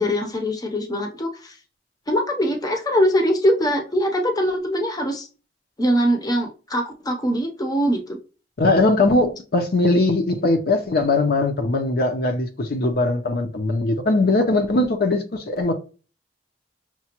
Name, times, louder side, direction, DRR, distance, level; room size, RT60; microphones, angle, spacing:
voice 1, 0.0-1.6 2.1-5.3 5.8-8.2, equal, 20° left, 0.6 m, -22 dB
voice 2, 8.6-15.7, left 2 dB, 60° left, 0.6 m, -20 dB
5.8 x 2.2 x 2.9 m
head